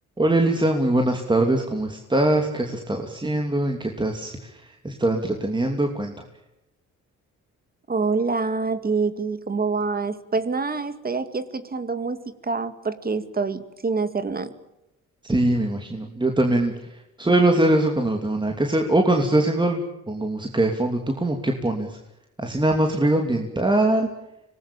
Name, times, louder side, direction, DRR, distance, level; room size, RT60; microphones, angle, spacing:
voice 1, 0.2-6.1 15.2-22.0 22.4-24.1, right 1 dB, 15° right, 3 dB, 2.9 m, -22 dB
voice 2, 7.9-14.5, right 4 dB, 30° right, 12 dB, 2.1 m, -26 dB
25.5 x 19.5 x 8.9 m, 0.91 s
cardioid pair, 90°, 30 cm